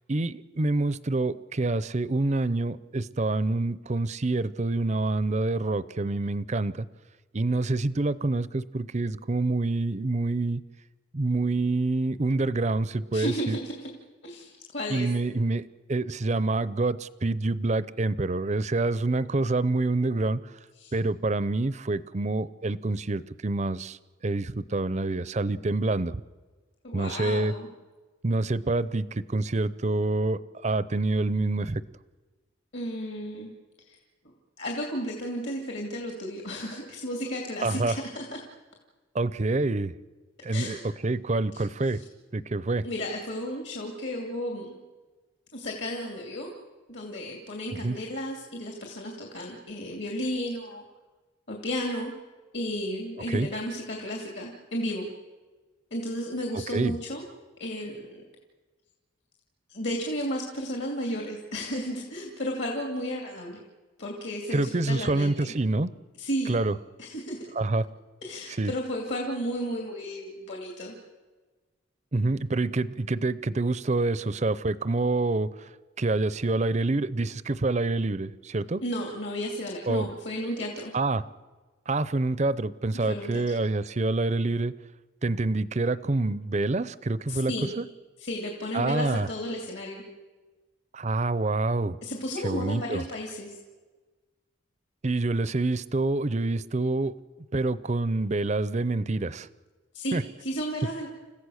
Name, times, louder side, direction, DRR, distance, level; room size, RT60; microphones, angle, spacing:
voice 1, 0.1-6.9 7.3-10.6 11.1-13.6 14.9-20.4 20.9-24.0 24.2-26.2 26.9-27.5 28.2-31.8 37.6-38.0 39.1-39.9 40.4-40.8 41.0-42.0 42.3-42.8 47.8-48.0 53.3-53.5 56.5-57.0 64.5-65.9 66.5-66.7 67.6-67.8 68.6-68.7 72.1-75.7 76.0-78.8 79.9-80.1 80.9-81.2 81.9-84.7 85.2-87.8 88.7-89.3 90.9-92.0 92.4-93.0 95.0-97.1 97.5-99.5 100.1-100.2, right 2 dB, 35° right, 17 dB, 0.6 m, -27 dB
voice 2, 13.1-13.9 14.2-15.1 20.8-20.9 26.8-27.7 32.7-33.5 33.9-34.0 34.6-38.4 40.5-40.8 41.5-41.6 41.9-42.0 42.8-44.7 45.5-46.5 46.9-50.8 51.5-52.1 52.5-55.1 55.9-57.3 57.6-58.2 59.7-63.6 64.0-65.5 66.2-66.6 67.0-67.5 68.2-70.9 78.8-80.9 83.1-83.6 87.3-87.7 88.2-90.0 92.0-93.6 99.9-101.1, equal, 60° left, 0 dB, 2.7 m, -33 dB
29.5 x 15.5 x 6.5 m, 1.3 s
head